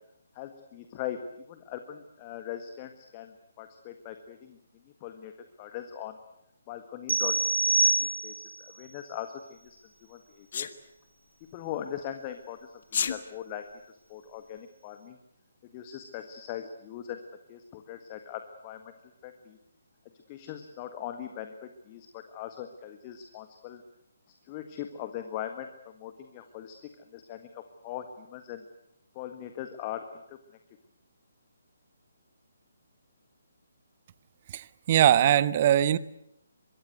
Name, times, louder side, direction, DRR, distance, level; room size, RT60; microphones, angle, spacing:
voice 1, 0.3-4.6 5.0-5.3 5.6-6.2 6.7-7.4 7.8-10.7 11.5-15.2 15.7-17.2 17.5-18.9 19.2-19.6 20.3-23.8 24.5-28.6 29.1-30.4, left 10 dB, 25° left, 8 dB, 1.6 m, -40 dB
sound 1, 7.1-8.6, right 3 dB, 65° right, 2.4 m, -25 dB
Sneeze, 10.5-10.7 12.8-13.2, left 7 dB, 45° left, 1.6 m, -29 dB
voice 2, 34.5-36.0, right 11 dB, 35° right, 18 dB, 0.9 m, -21 dB
25.0 x 22.5 x 8.0 m, 0.80 s
figure-of-eight pair, 140°, 0 cm